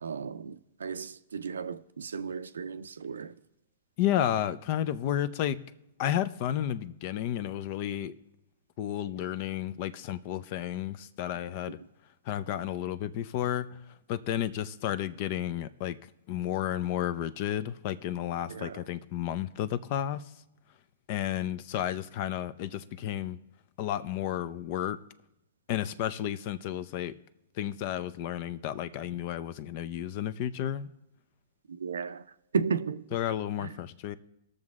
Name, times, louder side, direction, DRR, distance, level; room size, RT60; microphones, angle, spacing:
voice 1, 0.0-3.4 11.7-11.8 18.5-18.8 31.7-32.3 32.5-33.0 33.6-33.8, right 5 dB, 85° right, 0.5 m, -34 dB
voice 2, 4.0-5.6 6.0-8.2 8.8-11.8 12.3-13.8 14.1-16.0 16.3-20.3 21.1-23.4 23.8-25.0 25.7-27.2 27.5-30.9 33.1-34.2, left 11 dB, 50° left, 0.5 m, -32 dB
19.5 x 6.5 x 3.6 m
hypercardioid pair, 120°, 0 cm